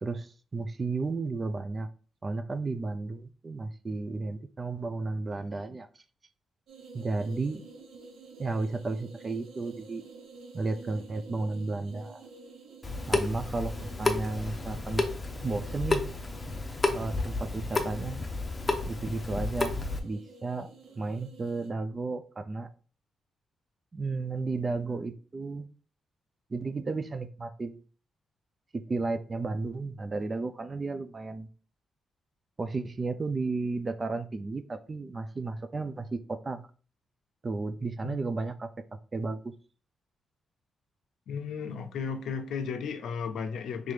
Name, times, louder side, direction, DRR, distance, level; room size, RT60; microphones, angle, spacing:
voice 1, 0.0-1.9 2.2-5.9 6.9-7.6 8.4-10.0 10.5-12.2 13.1-15.1 15.4-16.0 16.9-18.2 18.9-19.7 20.0-20.7 21.0-22.7 23.9-25.7 26.5-27.8 28.7-31.5 32.6-36.7 37.4-38.7 39.1-39.5, right 3 dB, 35° right, 0.4 m, -33 dB
sound 1, 6.7-21.7, right 4 dB, 85° right, 0.7 m, -50 dB
Water tap faucet / Sink (filling or washing) / Drip, 12.8-20.0, left 3 dB, 25° left, 0.7 m, -31 dB
voice 2, 41.3-43.9, left 6 dB, 80° left, 0.5 m, -34 dB
3.8 x 3.3 x 3.2 m
cardioid pair, 85°, 0 cm